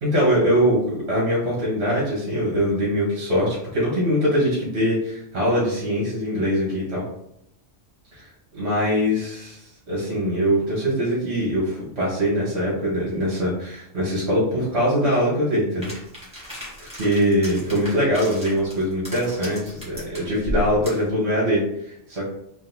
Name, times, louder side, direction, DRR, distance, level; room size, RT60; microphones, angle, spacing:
voice 1, 0.0-7.0 8.6-15.9 16.3-22.3, equal, 60° right, -6 dB, 1.5 m, -22 dB
sound 1, 15.8-21.1, equal, 5° right, 1.5 m, -35 dB
3.9 x 2.5 x 3.9 m, 0.77 s
omnidirectional pair, 1.2 m